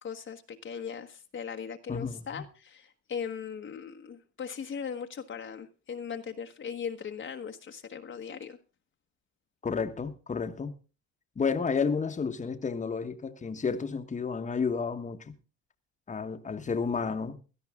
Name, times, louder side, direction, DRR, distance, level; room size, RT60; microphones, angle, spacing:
voice 1, 0.0-8.6, left 7 dB, 40° left, 1.3 m, -39 dB
voice 2, 1.9-2.4 9.6-10.7 11.3-15.3 16.1-17.4, left 5 dB, 25° left, 1.4 m, -31 dB
17.0 x 12.5 x 3.7 m
cardioid pair, 100°, 30 cm